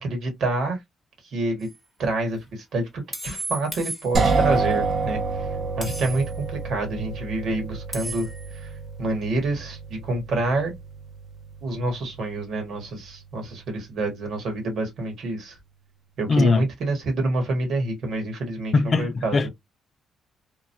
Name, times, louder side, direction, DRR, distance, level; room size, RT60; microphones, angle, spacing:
voice 1, 0.0-0.8 1.3-1.7 2.0-5.5 5.8-8.7 9.0-10.7 11.6-15.6 16.2-19.5, right 2 dB, 70° right, 1.5 m, -27 dB
sound 1, 1.6-1.8 3.1-4.6 5.8-6.4 7.9-8.6, right 1 dB, 15° left, 1.0 m, -35 dB
sound 2, 4.1-13.9, right 4 dB, 50° right, 0.7 m, -29 dB
voice 2, 16.3-16.6 18.7-19.5, left 3 dB, 40° left, 0.3 m, -21 dB
3.0 x 2.3 x 2.6 m
cardioid pair, 90°, 0 cm